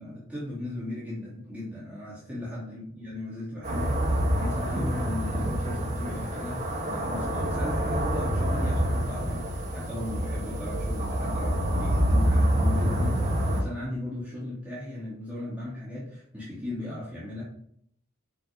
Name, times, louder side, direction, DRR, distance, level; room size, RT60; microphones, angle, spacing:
voice 1, 0.0-17.4, left 1 dB, 10° right, -9 dB, 2.8 m, -37 dB
sound 1, 3.6-13.6, equal, 35° right, 1.9 m, -27 dB
8.1 x 6.2 x 5.2 m, 0.68 s
head